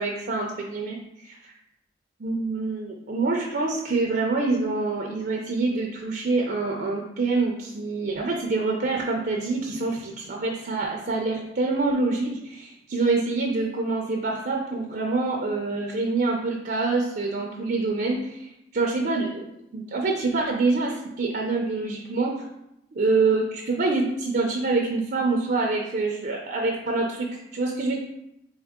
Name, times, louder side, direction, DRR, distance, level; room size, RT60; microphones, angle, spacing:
voice 1, 0.0-1.5 2.2-19.4 19.7-22.5 22.9-27.3 27.5-28.0, right 3 dB, 50° right, 0 dB, 0.5 m, -26 dB
3.6 x 3.4 x 3.5 m, 0.84 s
head